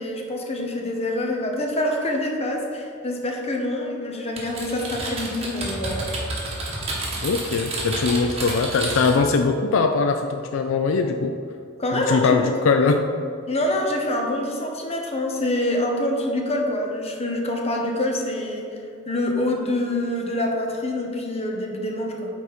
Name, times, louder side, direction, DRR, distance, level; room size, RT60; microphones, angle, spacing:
voice 1, 0.0-6.1 11.8-12.4 12.8-12.9 13.5-18.7 19.1-22.3, left 1 dB, 30° left, 1 dB, 1.0 m, -26 dB
Typing, 4.4-9.3, right 2 dB, 30° right, 1.5 m, -30 dB
voice 2, 7.2-11.4 11.9-13.1, left 4 dB, 70° left, 6 dB, 0.4 m, -21 dB
9.1 x 4.1 x 4.2 m, 2.5 s
head